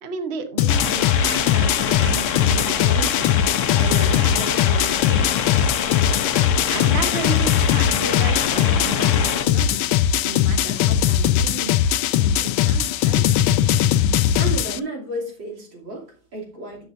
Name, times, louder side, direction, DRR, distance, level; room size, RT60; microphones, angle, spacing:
voice 1, 0.0-5.3 6.7-9.9 10.2-11.7 12.2-13.2, right 5 dB, 45° right, 6 dB, 0.9 m, -33 dB
sound 1, 0.6-14.8, left 10 dB, 75° left, 1.3 m, -20 dB
sound 2, 0.7-9.5, left 7 dB, 55° left, 0.8 m, -26 dB
voice 2, 14.4-16.9, right 1 dB, 60° right, -2 dB, 3.6 m, -32 dB
12.0 x 8.8 x 2.6 m, 0.39 s
omnidirectional pair, 2.3 m